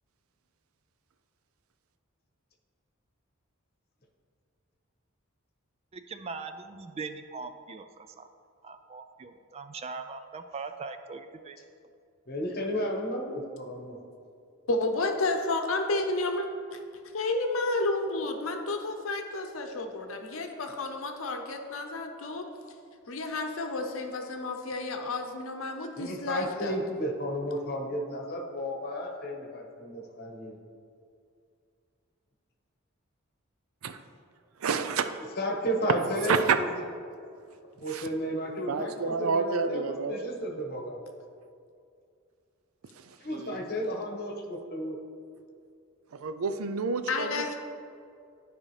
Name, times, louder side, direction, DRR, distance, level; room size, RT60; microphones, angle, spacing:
voice 1, 5.9-8.3 8.6-11.6, right 4 dB, 30° right, 8 dB, 0.3 m, -41 dB
voice 2, 12.3-14.0 25.9-30.6 35.4-36.7 37.8-41.0 43.2-44.9, equal, 50° left, 0 dB, 1.2 m, -33 dB
voice 3, 14.7-16.8 17.1-22.4 23.1-26.8 47.1-47.5, left 2 dB, 70° left, 4 dB, 0.8 m, -31 dB
voice 4, 34.6-35.1 36.2-36.6 37.9-38.1 38.7-40.3 43.0-43.6 46.1-47.5, right 5 dB, 85° right, 10 dB, 0.5 m, -29 dB
12.0 x 4.9 x 3.3 m, 2.4 s
head